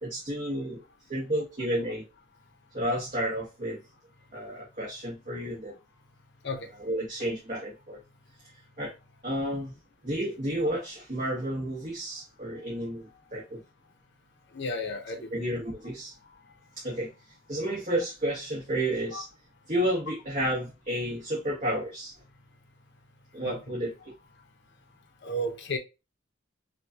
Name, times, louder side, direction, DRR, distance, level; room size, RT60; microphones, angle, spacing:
voice 1, 0.0-0.8 1.1-2.0 2.7-3.8 4.3-5.7 6.8-8.0 8.8-8.9 9.2-9.7 10.0-13.6 15.3-16.1 16.8-17.1 17.5-19.3 19.7-22.1 23.3-23.9, right 1 dB, 40° right, 1.5 m, -31 dB
voice 2, 14.5-15.3 23.5-23.6 25.2-25.8, left 1 dB, 55° left, 0.9 m, -32 dB
6.1 x 2.5 x 2.8 m
head